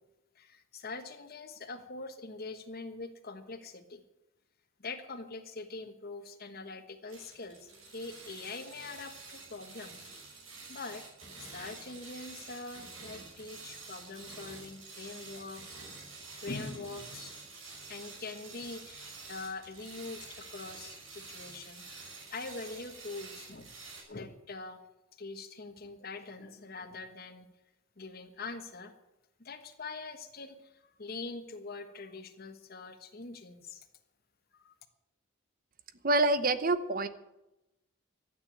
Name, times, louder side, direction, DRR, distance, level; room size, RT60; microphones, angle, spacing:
voice 1, 0.3-4.0 4.8-10.1 10.7-11.0 11.4-16.1 16.4-17.3 17.9-22.0 22.3-23.7 24.1-24.8 25.2-27.5 28.0-28.9 29.4-33.9 34.6-34.7, left 3 dB, 50° left, 8 dB, 1.3 m, -43 dB
sound 1, 7.1-24.0, right 3 dB, 85° right, 5.7 m, -48 dB
voice 2, 36.0-37.1, right 2 dB, 45° right, 12 dB, 0.9 m, -26 dB
13.0 x 9.0 x 8.6 m, 0.95 s
head